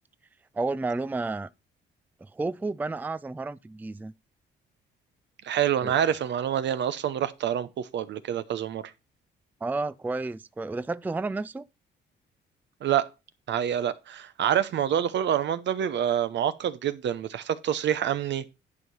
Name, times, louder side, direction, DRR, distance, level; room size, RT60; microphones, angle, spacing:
voice 1, 0.5-1.5 2.2-4.1 5.8-6.0 9.6-11.7, right 3 dB, 10° right, 0.4 m, -31 dB
voice 2, 5.4-8.8 12.8-13.1 13.5-18.5, right 10 dB, 65° right, 0.9 m, -27 dB
11.0 x 4.8 x 5.5 m
cardioid pair, 90°, 20 cm